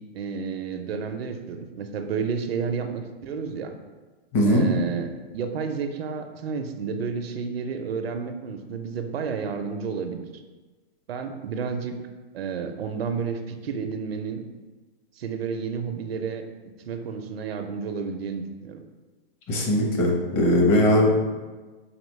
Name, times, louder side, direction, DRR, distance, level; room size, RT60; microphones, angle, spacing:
voice 1, 0.0-3.7 4.4-10.3 11.1-12.0 12.3-14.4 15.2-16.4 16.9-18.8, right 5 dB, 80° right, 7 dB, 0.5 m, -31 dB
voice 2, 4.3-4.7 19.5-21.2, left 1 dB, 35° left, -1 dB, 0.9 m, -20 dB
4.2 x 3.0 x 3.1 m, 1.3 s
hypercardioid pair, 130°, 30 cm